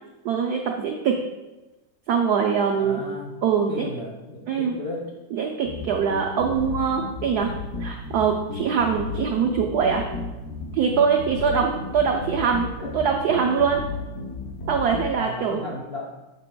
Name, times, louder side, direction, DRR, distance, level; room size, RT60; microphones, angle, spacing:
voice 1, 0.2-1.2 2.1-3.0 3.4-3.9 4.5-4.8 5.3-7.5 7.8-10.0 10.7-13.8 14.7-15.6, right 6 dB, 85° right, 2 dB, 0.8 m, -23 dB
voice 2, 2.7-3.3 3.7-5.1 12.1-12.3 12.8-12.9 13.8-13.9 15.1-16.1, left 2 dB, 80° left, -4 dB, 0.5 m, -35 dB
sound 1, 5.6-15.1, left 3 dB, 60° left, 0.9 m, -33 dB
6.8 x 6.6 x 2.2 m, 1.1 s
omnidirectional pair, 2.3 m